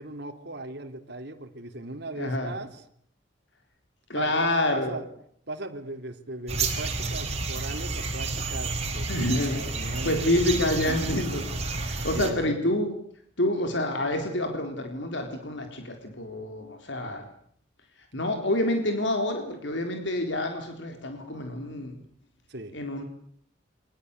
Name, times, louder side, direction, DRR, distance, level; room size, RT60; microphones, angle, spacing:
voice 1, 0.0-2.8 4.1-5.1 5.5-10.4 12.1-12.5 22.5-22.8, right 2 dB, 55° right, 4 dB, 3.8 m, -38 dB
voice 2, 2.2-2.5 4.1-4.9 9.1-12.9 13.4-17.3 18.1-21.9 22.7-23.0, left 1 dB, 65° left, 4 dB, 4.0 m, -28 dB
sound 1, 6.5-12.3, right 3 dB, 35° right, 6.5 m, -30 dB
28.5 x 24.5 x 8.4 m, 0.66 s
head